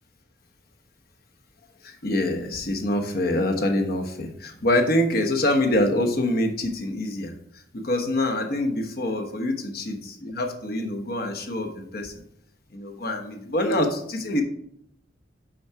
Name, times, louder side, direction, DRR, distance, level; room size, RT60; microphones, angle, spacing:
voice 1, 1.8-7.3 7.7-12.1 12.7-14.4, left 1 dB, 55° left, 4 dB, 1.0 m, -25 dB
6.3 x 4.7 x 5.6 m, 0.72 s
head